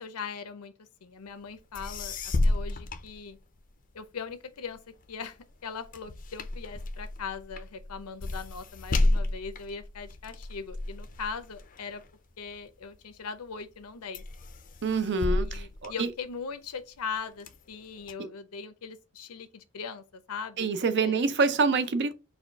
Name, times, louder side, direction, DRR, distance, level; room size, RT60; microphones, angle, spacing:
voice 1, 0.0-3.4 3.9-4.8 5.1-12.0 12.4-14.2 15.4-20.7 21.0-21.2, left 5 dB, 80° left, 0.7 m, -40 dB
sound 1, 1.5-1.6 1.7-3.9 4.3-13.0 13.5-13.9 14.1-16.6 17.1-18.1, left 2 dB, 40° left, 0.5 m, -32 dB
voice 2, 14.8-16.1 20.6-22.1, right 4 dB, 55° right, 0.5 m, -26 dB
4.2 x 2.3 x 4.5 m
head